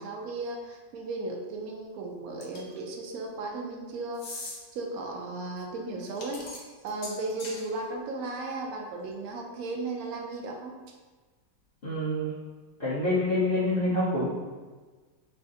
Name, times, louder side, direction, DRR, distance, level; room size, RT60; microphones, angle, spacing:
voice 1, 0.0-10.7, right 2 dB, 75° right, 1 dB, 0.8 m, -36 dB
sound 1, 2.4-2.8 4.1-4.6 6.0-7.6, left 2 dB, 55° left, 1.0 m, -40 dB
voice 2, 11.8-12.3 12.8-14.3, left 1 dB, 85° left, -10 dB, 0.5 m, -26 dB
3.3 x 2.4 x 3.8 m, 1.4 s
omnidirectional pair, 2.0 m